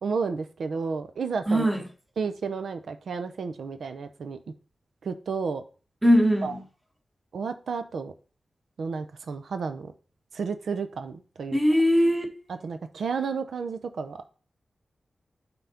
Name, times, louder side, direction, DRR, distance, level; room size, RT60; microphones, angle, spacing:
voice 1, 0.0-1.7 2.2-4.4 5.0-5.6 6.4-6.5 7.3-8.1 8.8-9.9 10.3-11.6 12.6-14.2, right 5 dB, 90° right, 0.5 m, -31 dB
voice 2, 1.5-1.8 6.0-6.6 11.5-12.2, equal, 10° right, 1.4 m, -20 dB
5.6 x 3.8 x 5.7 m
wide cardioid pair, 100°, 0 cm